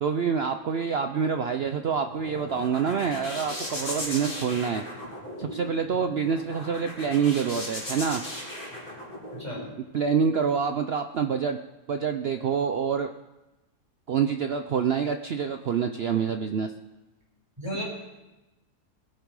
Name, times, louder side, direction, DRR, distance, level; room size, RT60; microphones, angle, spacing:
voice 1, 0.0-4.8 5.4-8.3 9.9-11.6 11.9-13.1 14.1-16.7, right 6 dB, 65° right, 7 dB, 0.6 m, -26 dB
sound 1, 2.0-9.7, left 1 dB, 30° left, 3.7 m, -37 dB
voice 2, 9.3-9.7 17.6-17.8, equal, 15° right, -4 dB, 5.1 m, -33 dB
20.5 x 9.0 x 4.8 m, 1.0 s
omnidirectional pair, 1.7 m